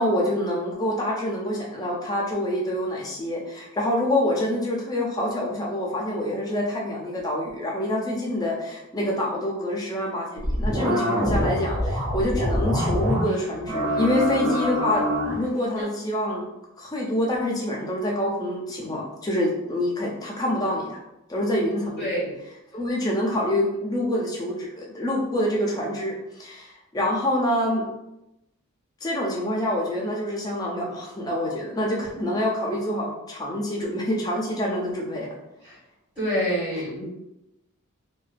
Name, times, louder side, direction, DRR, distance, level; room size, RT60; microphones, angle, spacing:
voice 1, 0.0-15.0 15.3-16.5 16.8-21.0 21.3-22.1 22.7-27.9 29.0-35.3, left 1 dB, 15° left, -3 dB, 0.4 m, -26 dB
sound 1, 10.4-13.4 13.7-15.4 15.8-15.9, equal, 75° right, 1.3 m, -25 dB
voice 2, 22.0-22.4 35.6-35.8 36.1-37.1, equal, 15° right, -13 dB, 1.4 m, -27 dB
2.4 x 2.2 x 2.4 m, 0.91 s
head